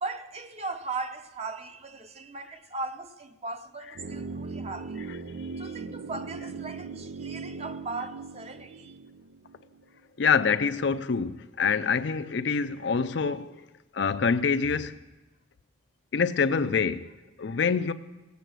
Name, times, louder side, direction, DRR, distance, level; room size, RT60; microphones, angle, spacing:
voice 1, 0.0-5.0 5.6-9.0, right 3 dB, 30° right, 0.7 m, -38 dB
sound 1, 3.9-10.0 10.2-10.3, right 4 dB, 90° right, 0.5 m, -39 dB
voice 2, 10.2-13.6 13.9-15.0 16.1-17.1 17.4-17.9, left 5 dB, 60° left, 0.5 m, -26 dB
18.0 x 8.2 x 6.2 m
head